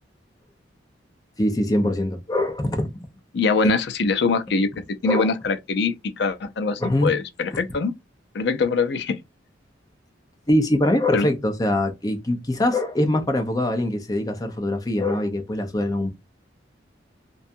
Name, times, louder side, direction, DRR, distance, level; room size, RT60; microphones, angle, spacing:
voice 1, 1.4-3.0 3.6-3.7 4.7-5.3 6.8-7.1 7.5-7.6 10.5-16.1, left 1 dB, 20° left, 0.6 m, -23 dB
voice 2, 3.3-4.7 5.0-7.9 8.3-9.2 11.1-11.3, left 4 dB, 65° left, 0.5 m, -23 dB
2.6 x 2.3 x 2.6 m
head